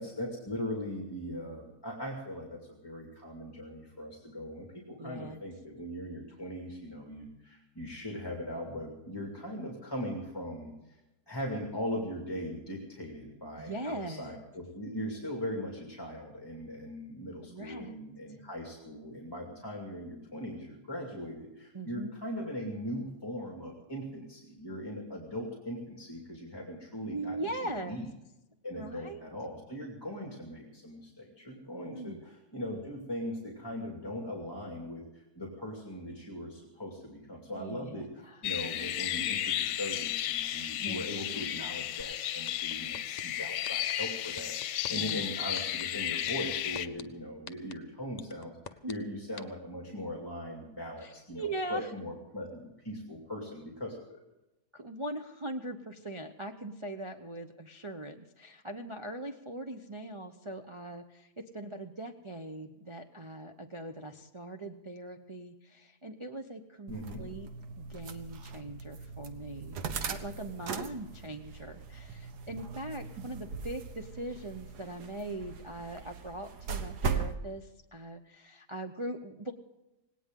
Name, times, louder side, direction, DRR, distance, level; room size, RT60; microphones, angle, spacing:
voice 1, 0.0-11.0 11.3-27.5 27.9-28.0 28.6-54.2 66.9-67.2, equal, 15° left, -1 dB, 2.4 m, -40 dB
voice 2, 5.0-5.4 13.6-14.4 17.4-18.0 21.7-22.2 27.1-28.0 28.8-29.2 31.9-32.2 37.5-38.4 40.8-41.0 44.9-45.2 48.8-48.9 51.0-51.9 54.7-67.5 67.8-69.8 70.1-79.5, right 1 dB, 30° right, 3 dB, 0.6 m, -41 dB
sound 1, 38.4-46.9, left 12 dB, 80° left, 1.3 m, -33 dB
sound 2, 42.0-42.1 42.5-43.2 43.6-43.9 44.4-45.1 45.5-45.8 46.3-47.0 47.5-47.7 48.2-48.9 49.4-49.5, left 6 dB, 50° left, 0.5 m, -43 dB
sound 3, 66.9-77.4, right 5 dB, 70° right, 1.6 m, -39 dB
18.5 x 18.0 x 3.8 m, 0.96 s
omnidirectional pair, 1.8 m